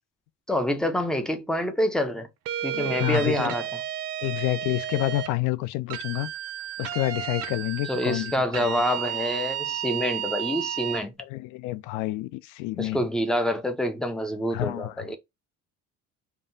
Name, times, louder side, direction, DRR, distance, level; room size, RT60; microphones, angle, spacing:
voice 1, 0.5-2.3 2.6-3.7 7.9-11.1 12.8-15.2, equal, ahead, 0.3 m, -27 dB
sound 1, 2.5-5.3 5.9-11.0, right 11 dB, 55° right, 0.6 m, -32 dB
voice 2, 2.7-3.5 4.2-6.3 6.8-8.7 11.2-13.0 14.5-15.2, left 18 dB, 80° left, 0.5 m, -29 dB
3.7 x 2.4 x 3.8 m
cardioid pair, 180°, 30 cm